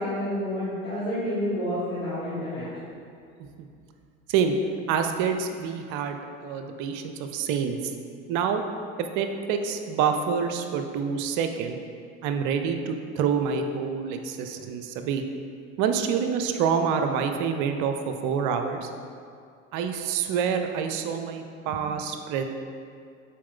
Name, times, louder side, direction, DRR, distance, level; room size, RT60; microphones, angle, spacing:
voice 1, 0.0-2.7, equal, 80° left, -11 dB, 1.4 m, -29 dB
voice 2, 4.9-7.8 8.3-8.6 9.0-11.8 12.2-15.3 15.8-18.9 19.7-22.4, right 7 dB, 50° right, 6 dB, 0.6 m, -27 dB
7.4 x 4.1 x 3.7 m, 2.3 s
figure-of-eight pair, 70°, 40 cm